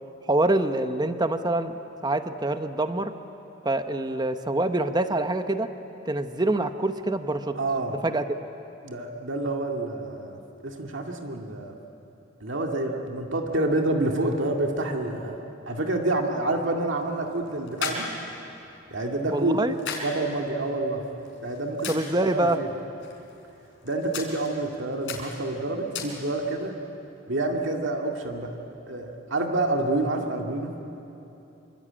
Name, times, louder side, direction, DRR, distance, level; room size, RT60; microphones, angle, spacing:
voice 1, 0.3-1.8 2.0-3.1 3.6-5.7 6.0-7.6 7.9-8.3 19.3-19.7 21.9-22.6, right 2 dB, 20° right, 9 dB, 1.0 m, -25 dB
voice 2, 7.6-8.0 8.8-10.4 10.6-11.7 12.4-15.4 15.7-18.1 18.9-19.6 20.0-21.0 21.4-22.0 22.3-22.7 23.8-26.7 27.3-28.5 28.9-30.7, right 2 dB, 65° right, 2 dB, 2.2 m, -28 dB
sound 1, 16.6-26.6, left 4 dB, 70° left, 4.3 m, -39 dB
26.5 x 24.0 x 8.8 m, 2.9 s
head